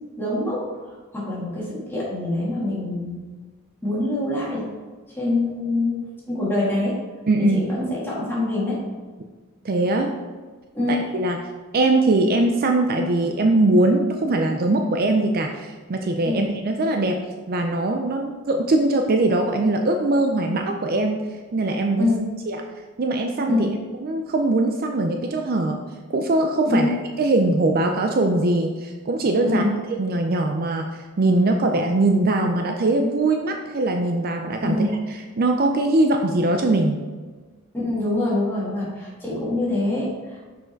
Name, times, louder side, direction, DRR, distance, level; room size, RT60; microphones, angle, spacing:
voice 1, 0.2-0.7 1.1-3.2 3.8-4.7 5.2-6.0 6.3-7.0 7.5-8.8 10.7-10.9 16.3-16.4 22.0-22.2 23.5-23.7 26.7-26.9 29.4-29.7 34.6-34.9 37.8-40.4, left 2 dB, 10° left, -7 dB, 2.1 m, -24 dB
voice 2, 7.3-7.6 9.6-10.1 10.9-11.4 11.7-21.2 21.5-22.1 22.5-22.6 23.0-23.7 24.0-25.8 26.1-26.9 27.2-29.7 30.0-34.8 35.4-37.0, right 2 dB, 45° right, 4 dB, 0.4 m, -21 dB
6.4 x 4.7 x 4.5 m, 1.4 s
head